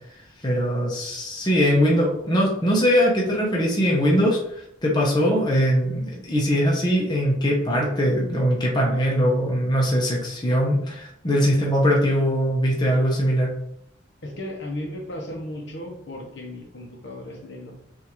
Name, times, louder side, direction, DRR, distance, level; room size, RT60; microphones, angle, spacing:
voice 1, 0.4-13.5, equal, 20° left, -3 dB, 0.9 m, -21 dB
voice 2, 14.2-17.7, left 1 dB, 70° left, 0 dB, 1.0 m, -35 dB
5.7 x 2.7 x 3.1 m, 0.74 s
head